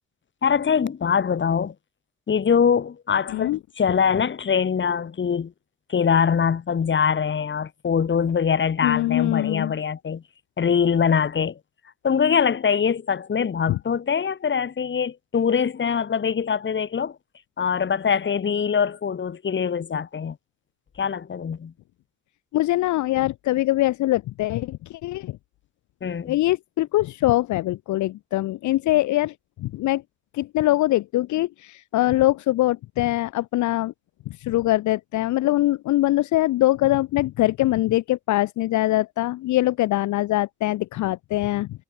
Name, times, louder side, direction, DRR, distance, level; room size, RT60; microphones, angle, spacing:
voice 1, 0.4-1.7 2.3-5.5 5.9-10.2 10.6-11.6 12.0-17.2 17.6-20.4 21.0-21.7 26.0-26.4, left 7 dB, 40° left, 1.8 m, -23 dB
voice 2, 8.8-9.7 13.7-13.8 22.5-25.4 26.3-29.3 29.6-30.0 30.3-33.9 34.4-41.7, left 16 dB, 70° left, 0.6 m, -23 dB
cardioid pair, 90°, 30 cm